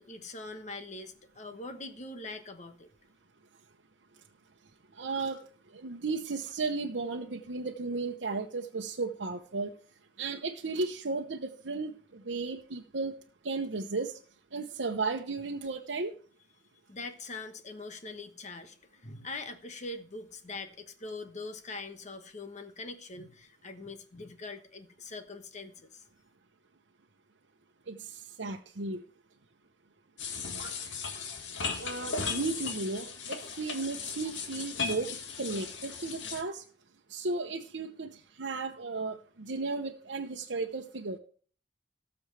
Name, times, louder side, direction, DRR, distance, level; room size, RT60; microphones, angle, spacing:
voice 1, 0.0-2.9 16.9-26.0, left 3 dB, 40° left, 1.2 m, -43 dB
voice 2, 5.0-5.4 5.7-9.7 10.2-13.1 13.4-14.2 14.5-16.1 27.9-29.0 31.8-35.1 35.4-36.6 37.1-41.2, right 3 dB, 85° right, 0.9 m, -34 dB
sound 1, 30.2-36.4, left 5 dB, 85° left, 1.9 m, -37 dB
18.5 x 7.0 x 3.4 m
head